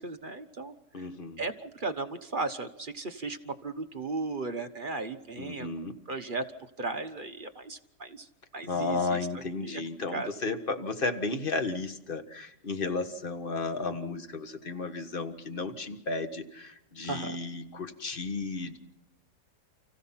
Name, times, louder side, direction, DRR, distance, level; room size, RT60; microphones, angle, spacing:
voice 1, 0.0-1.1 1.4-5.7 6.1-6.4 6.8-8.3 8.5-9.2 9.6-9.8 10.1-10.3 17.1-17.4, right 3 dB, 35° right, 7 dB, 1.1 m, -36 dB
voice 2, 0.9-1.4 5.4-6.0 8.6-18.8, left 3 dB, 35° left, 8 dB, 1.6 m, -33 dB
30.0 x 15.5 x 5.8 m, 0.83 s
omnidirectional pair, 1.8 m